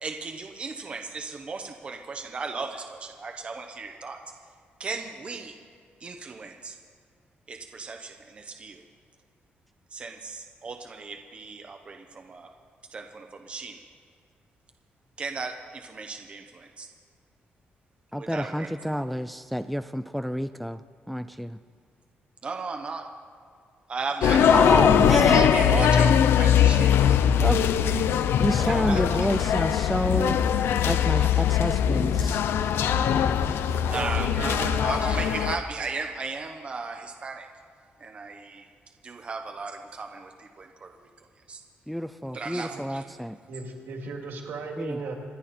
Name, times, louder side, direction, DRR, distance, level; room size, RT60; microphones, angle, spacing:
voice 1, 0.0-4.2 4.8-5.6 6.0-6.8 7.5-8.8 9.9-12.5 12.9-13.8 15.2-16.9 18.2-18.7 22.4-23.0 23.9-24.6 25.1-27.2 28.7-29.5 30.6-30.7 33.9-37.5 38.0-38.7 39.0-41.6 42.3-43.5, right 4 dB, 30° right, 4 dB, 0.9 m, -36 dB
voice 2, 18.1-20.8 21.1-21.6 24.5-25.5 27.4-27.6 28.4-30.4 30.9-32.4 41.9-43.4 44.8-45.0, equal, ahead, 11 dB, 0.3 m, -28 dB
sound 1, 24.2-35.6, left 8 dB, 90° left, 0.7 m, -21 dB
voice 3, 28.4-28.9 33.9-34.8 43.5-45.1, right 4 dB, 70° right, 1 dB, 2.7 m, -36 dB
26.5 x 11.0 x 4.3 m, 2.2 s
wide cardioid pair, 170°, 4 cm